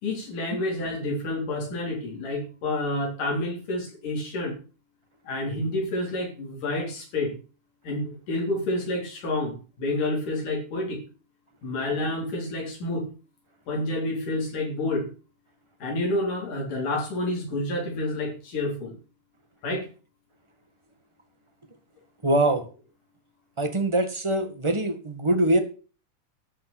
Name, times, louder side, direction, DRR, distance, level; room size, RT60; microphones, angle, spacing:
voice 1, 0.0-4.5 5.3-7.4 7.8-11.0 11.6-13.1 13.7-15.1 15.8-19.0 19.6-19.9, left 2 dB, 85° left, -1 dB, 5.5 m, -29 dB
voice 2, 22.2-22.6 23.6-25.6, right 1 dB, 15° right, 6 dB, 1.3 m, -23 dB
13.0 x 5.6 x 9.1 m, 0.36 s
omnidirectional pair, 3.6 m